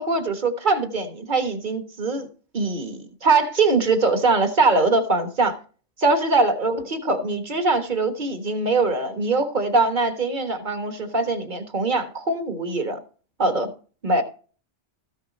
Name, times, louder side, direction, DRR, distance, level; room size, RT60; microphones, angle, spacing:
voice 1, 0.0-2.3 2.5-5.5 6.0-13.0 13.4-13.7 14.0-14.2, right 3 dB, 45° right, 1.4 m, -22 dB
14.0 x 6.5 x 4.1 m
omnidirectional pair, 1.2 m